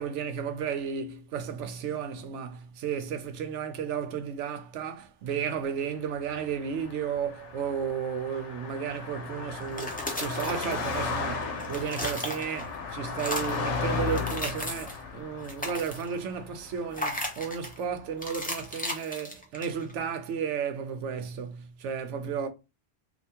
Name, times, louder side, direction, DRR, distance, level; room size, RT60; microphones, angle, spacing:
voice 1, 0.0-22.5, right 7 dB, 75° right, 0.9 m, -33 dB
Car passing by, 6.2-17.7, left 5 dB, 75° left, 1.0 m, -35 dB
sound 1, 9.6-11.2 11.5-12.8 13.1-13.7 14.1-15.0 15.4-16.2 16.9-17.8 18.2-19.9, left 1 dB, 10° left, 0.5 m, -36 dB
3.3 x 2.5 x 2.8 m
omnidirectional pair, 1.3 m